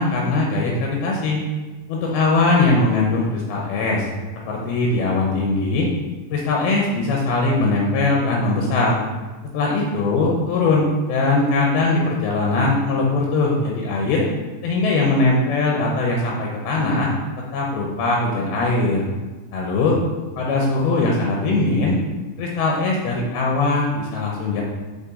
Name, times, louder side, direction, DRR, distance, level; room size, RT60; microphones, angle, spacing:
voice 1, 0.0-1.4 1.9-4.1 4.5-5.9 6.3-9.0 9.5-14.3 14.6-17.1 17.5-19.0 19.5-20.0 20.4-22.0 22.4-24.6, left 3 dB, 80° left, -2 dB, 2.7 m, -20 dB
6.9 x 5.0 x 3.7 m, 1.2 s
omnidirectional pair, 4.5 m